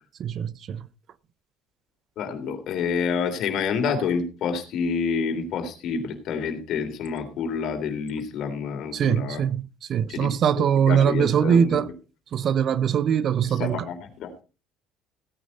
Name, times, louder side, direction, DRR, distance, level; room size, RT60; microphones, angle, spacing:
voice 1, 0.2-0.9 8.9-9.6 9.9-11.9 12.3-13.9, right 8 dB, 55° right, 0.7 m, -22 dB
voice 2, 2.2-9.4 10.1-11.9 13.4-14.3, left 6 dB, 60° left, 3.4 m, -28 dB
16.5 x 9.4 x 4.1 m
supercardioid pair, 80°, 0 cm